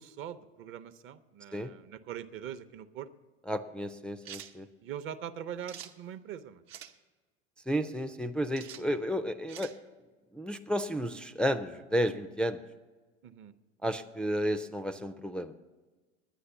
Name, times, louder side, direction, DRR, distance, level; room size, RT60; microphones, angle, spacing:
voice 1, 0.0-3.1 4.8-6.6 13.2-13.5, right 9 dB, 40° right, 11 dB, 0.7 m, -42 dB
voice 2, 3.5-4.7 7.7-9.7 10.3-12.6 13.8-15.5, equal, 5° left, 6 dB, 0.4 m, -32 dB
sound 1, 4.2-4.5 5.6-5.9 6.7-6.9 8.6-8.8 9.5-9.8, right 10 dB, 65° right, 0.9 m, -45 dB
10.0 x 9.7 x 7.0 m, 1.3 s
hypercardioid pair, 90°, 33 cm